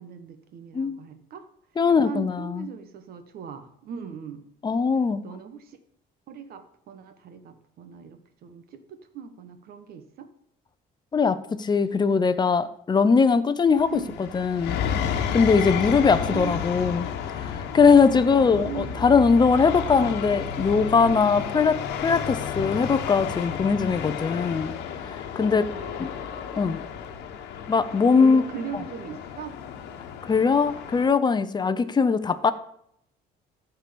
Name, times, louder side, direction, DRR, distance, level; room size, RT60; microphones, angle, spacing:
voice 1, 0.0-1.4 1.9-4.4 5.2-5.8 6.3-10.3 13.9-14.2 15.8-16.7 18.2-19.1 19.9-20.1 25.7-26.2 28.2-29.6, right 7 dB, 65° right, 9 dB, 1.3 m, -39 dB
voice 2, 1.8-2.7 4.6-5.2 11.1-14.0 14.3-14.8 15.3-17.1 17.3-24.7 25.0-25.7 26.0-26.1 26.6-26.8 27.7-28.4 30.2-32.5, left 5 dB, 25° left, 12 dB, 0.7 m, -21 dB
sound 1, 13.7-31.1, left 7 dB, 85° left, 1.2 m, -32 dB
13.5 x 4.7 x 5.2 m, 0.70 s
cardioid pair, 110°, 17 cm